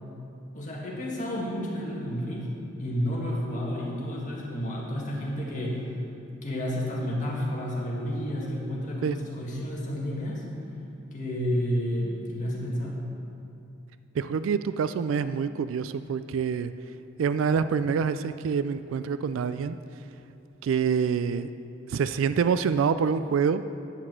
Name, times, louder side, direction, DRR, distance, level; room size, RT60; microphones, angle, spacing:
voice 1, 0.5-2.5 2.8-5.9 6.4-10.4 11.1-13.0, equal, 40° left, -3 dB, 1.9 m, -31 dB
voice 2, 14.1-16.7 17.2-19.8 20.6-21.5 21.9-23.6, right 6 dB, 80° right, 12 dB, 0.3 m, -26 dB
10.0 x 6.0 x 7.6 m, 2.7 s
head